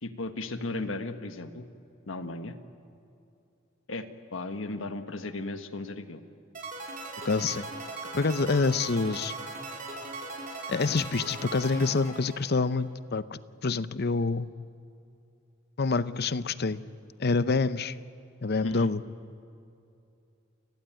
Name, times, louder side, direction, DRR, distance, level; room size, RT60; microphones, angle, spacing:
voice 1, 0.0-1.7 2.1-2.5 3.9-6.2 18.6-18.9, left 2 dB, 75° left, 8 dB, 1.5 m, -36 dB
sound 1, 6.5-12.8, right 2 dB, 40° right, 4.4 m, -39 dB
voice 2, 7.2-7.7 8.1-9.3 10.7-14.5 15.8-16.8 17.2-18.0 18.4-19.0, left 4 dB, 55° left, 15 dB, 0.7 m, -27 dB
29.5 x 19.0 x 9.0 m, 2.7 s
head